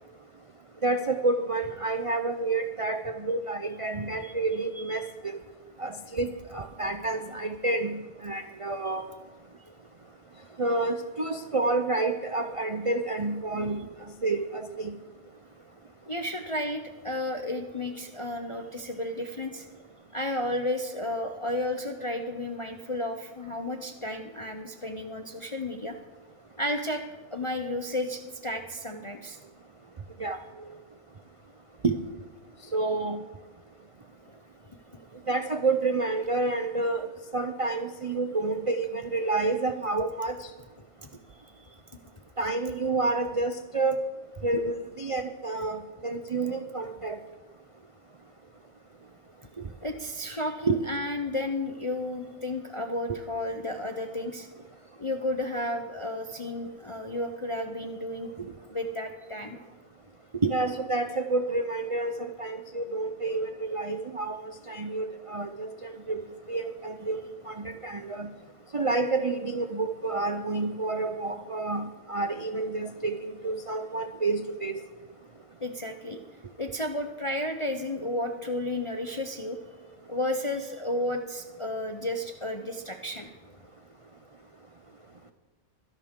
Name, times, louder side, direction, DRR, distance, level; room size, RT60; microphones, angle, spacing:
voice 1, 0.8-5.3 5.8-9.0 10.6-13.9 14.2-15.0 30.2-30.4 31.8-32.0 32.7-33.2 35.3-37.1 37.3-40.4 42.4-44.0 44.4-47.1 49.6-49.7 50.7-50.8 53.1-53.2 60.4-66.2 66.5-67.2 67.5-68.3 68.7-74.8, right 3 dB, 50° right, 7 dB, 0.4 m, -29 dB
voice 2, 4.8-5.1 16.1-19.7 20.1-25.9 26.6-27.0 27.3-29.4 34.3-34.4 41.0-41.1 41.6-41.7 49.8-54.5 55.0-58.3 58.7-59.6 75.6-76.2 76.6-79.6 80.1-83.3, left 1 dB, 35° left, 5 dB, 0.5 m, -32 dB
23.5 x 11.0 x 3.7 m, 1.2 s
omnidirectional pair, 1.5 m